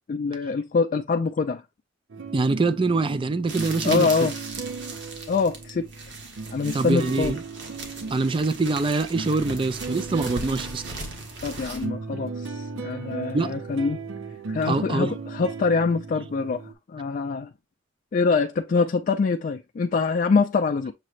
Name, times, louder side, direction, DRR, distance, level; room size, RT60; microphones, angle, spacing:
voice 1, 0.1-1.6 3.8-4.3 5.3-5.9 6.5-7.3 11.4-14.0 14.5-17.5 18.1-20.9, left 4 dB, 45° left, 0.3 m, -24 dB
sound 1, 2.1-16.7, right 4 dB, 90° right, 0.6 m, -37 dB
voice 2, 2.3-4.3 6.7-7.4 8.1-10.8 13.3-13.5 14.7-15.1, right 3 dB, 25° right, 0.4 m, -24 dB
sound 2, 3.5-11.8, right 3 dB, 65° right, 1.4 m, -38 dB
6.6 x 3.1 x 2.4 m
head